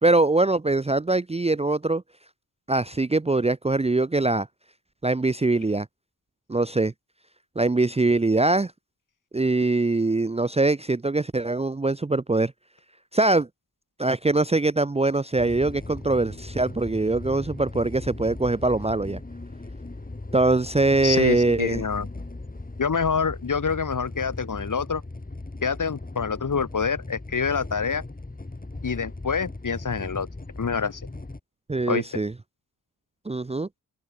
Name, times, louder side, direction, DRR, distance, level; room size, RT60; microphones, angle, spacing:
voice 1, 0.0-2.0 2.7-4.5 5.0-5.9 6.5-6.9 7.6-8.7 9.3-12.5 13.1-13.5 14.0-19.2 20.3-21.8 31.7-32.3 33.3-33.7, right 2 dB, 15° right, 0.7 m, -22 dB
sound 1, 15.4-31.4, left 2 dB, 20° left, 3.4 m, -38 dB
voice 2, 21.0-22.2 22.8-25.0 25.6-28.0 28.8-30.3 30.6-31.1 31.9-32.1, left 5 dB, 50° left, 3.3 m, -26 dB
open air
supercardioid pair, 45°, 39 cm